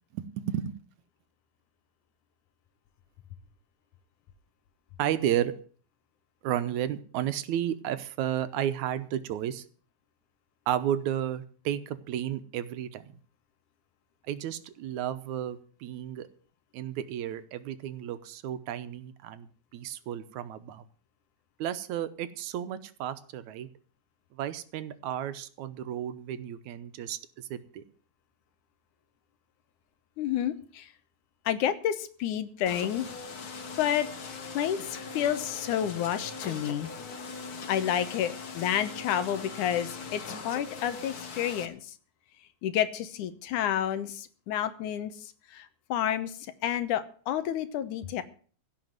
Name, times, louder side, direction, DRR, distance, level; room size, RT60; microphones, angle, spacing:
voice 1, 0.1-0.7 5.0-5.5 6.4-9.7 10.7-13.2 14.3-16.3 16.7-19.5 19.7-20.8 21.6-23.7 24.4-27.8, right 11 dB, 75° right, 12 dB, 2.2 m, -32 dB
voice 2, 30.2-30.9 31.5-33.1 33.8-34.1 34.5-36.9 37.7-41.8 42.6-46.3 46.6-48.2, left 10 dB, 85° left, 12 dB, 2.5 m, -30 dB
sound 1, 32.7-41.7, left 4 dB, 50° left, 1.1 m, -41 dB
16.0 x 5.9 x 9.3 m, 0.44 s
omnidirectional pair, 3.5 m